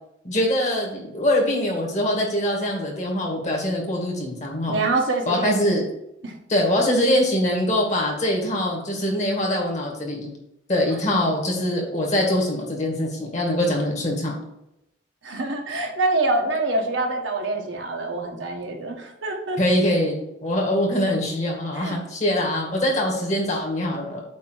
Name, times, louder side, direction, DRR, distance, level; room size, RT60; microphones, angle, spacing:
voice 1, 0.2-4.8 5.3-5.8 6.5-10.3 10.7-14.4 19.6-24.2, left 1 dB, 35° left, -1 dB, 2.1 m, -23 dB
voice 2, 4.7-5.5 6.2-6.3 15.2-19.6 21.7-22.0, right 2 dB, 75° right, 1 dB, 1.3 m, -25 dB
8.5 x 3.0 x 6.3 m, 0.83 s
head